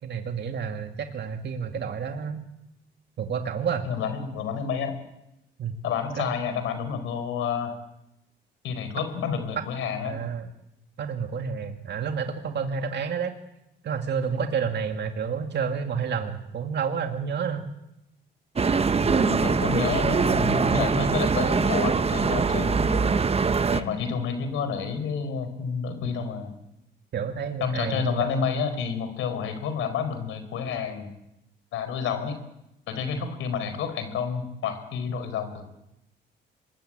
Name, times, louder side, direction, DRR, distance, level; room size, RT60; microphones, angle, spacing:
voice 1, 0.0-2.4 3.2-3.9 5.6-5.8 6.1-6.4 10.0-10.5 11.0-13.3 13.8-17.7 27.1-28.5 33.1-33.2, right 6 dB, 60° right, 5 dB, 2.3 m, -30 dB
voice 2, 3.8-5.0 5.8-7.8 8.6-10.2 19.0-23.2 23.7-26.5 27.6-31.1 31.7-32.3 32.9-35.6, left 6 dB, 85° left, 9 dB, 4.7 m, -29 dB
sound 1, 18.6-23.8, right 5 dB, 30° right, 1.1 m, -23 dB
25.5 x 21.0 x 9.0 m, 0.87 s
cardioid pair, 90°, 20 cm